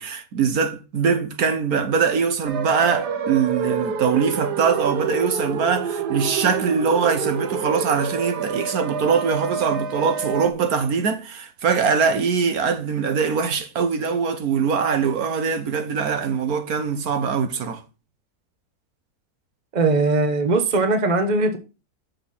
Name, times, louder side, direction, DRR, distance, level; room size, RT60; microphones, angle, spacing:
voice 1, 0.0-17.8, right 6 dB, 65° right, 1.4 m, -22 dB
sound 1, 2.4-10.5, right 6 dB, 85° right, 1.6 m, -28 dB
voice 2, 19.7-21.6, right 3 dB, 30° right, 1.1 m, -20 dB
6.5 x 6.4 x 5.6 m
omnidirectional pair, 1.7 m